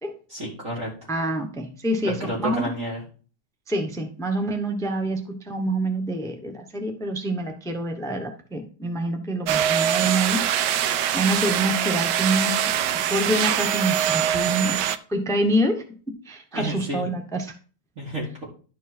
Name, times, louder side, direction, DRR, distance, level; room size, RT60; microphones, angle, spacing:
voice 1, 0.3-0.9 2.0-3.0 16.5-17.0 18.0-18.4, right 1 dB, 50° right, -7 dB, 2.9 m, -30 dB
voice 2, 1.1-2.7 3.7-10.7 11.1-15.8 16.2-17.5, right 1 dB, 5° left, 5 dB, 0.7 m, -26 dB
sound 1, 9.5-15.0, right 10 dB, 90° right, 1.2 m, -23 dB
11.5 x 4.5 x 4.3 m, 0.39 s
omnidirectional pair, 1.8 m